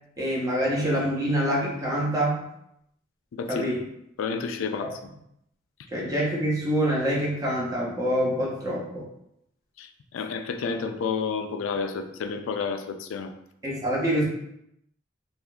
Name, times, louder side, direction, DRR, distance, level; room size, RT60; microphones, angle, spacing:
voice 1, 0.2-2.5 3.5-3.8 4.8-4.9 5.9-9.0 13.6-14.2, equal, 20° right, -5 dB, 0.8 m, -26 dB
voice 2, 4.2-5.0 9.8-13.3, left 5 dB, 85° left, 7 dB, 0.3 m, -30 dB
3.5 x 2.4 x 2.3 m, 0.76 s
head